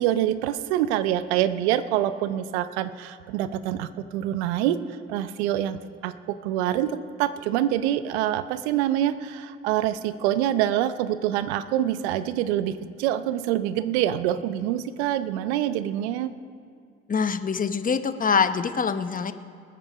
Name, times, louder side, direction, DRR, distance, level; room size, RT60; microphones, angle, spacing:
voice 1, 0.0-16.3, right 12 dB, 80° right, 14 dB, 0.7 m, -26 dB
voice 2, 17.1-19.3, left 6 dB, 25° left, 11 dB, 0.9 m, -24 dB
20.5 x 8.8 x 5.2 m, 2.2 s
hypercardioid pair, 60°, 33 cm